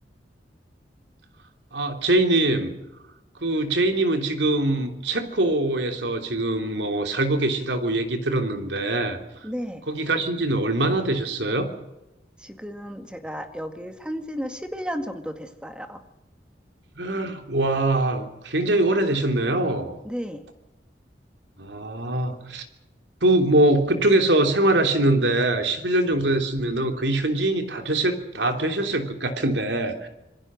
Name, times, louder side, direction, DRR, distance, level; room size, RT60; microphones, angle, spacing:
voice 1, 1.7-2.7 3.4-9.5 9.9-11.7 17.0-19.9 21.6-22.6 23.2-30.1, right 2 dB, 85° right, 6 dB, 3.2 m, -23 dB
voice 2, 9.4-9.9 12.4-16.0 20.0-20.4, equal, 5° right, 7 dB, 1.8 m, -33 dB
26.5 x 22.5 x 6.4 m, 0.94 s
head